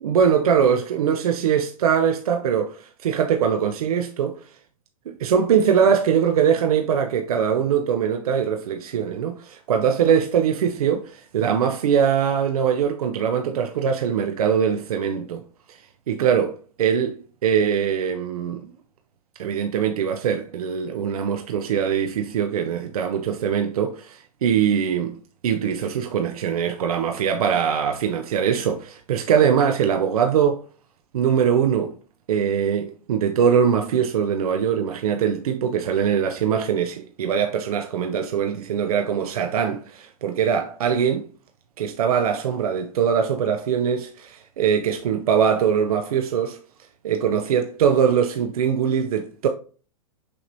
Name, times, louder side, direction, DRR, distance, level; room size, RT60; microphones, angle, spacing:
voice 1, 0.0-4.4 5.1-15.4 15.7-18.7 19.4-25.2 25.4-30.6 31.1-31.9 32.3-41.3 41.8-46.6 47.0-49.5, right 7 dB, 80° right, 0.5 m, -22 dB
6.1 x 2.9 x 2.6 m
hypercardioid pair, 145°, 19 cm